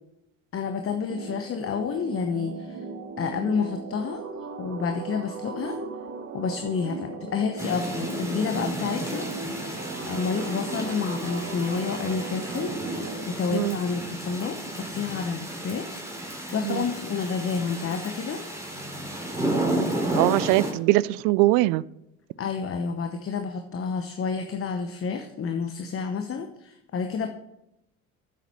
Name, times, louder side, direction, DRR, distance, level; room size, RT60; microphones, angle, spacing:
voice 1, 0.5-2.8 3.2-4.2 4.6-5.8 6.3-9.3 9.6-18.4 22.4-27.3, left 5 dB, 35° left, 6 dB, 1.0 m, -30 dB
sound 1, 1.1-13.3, right 4 dB, 40° right, 1.2 m, -37 dB
thunder storm mild raining, 7.6-20.7, right 1 dB, 5° right, 2.9 m, -32 dB
voice 2, 20.2-21.8, right 19 dB, 55° right, 21 dB, 0.5 m, -22 dB
8.2 x 7.4 x 5.6 m, 0.86 s
figure-of-eight pair, 55°, 40 cm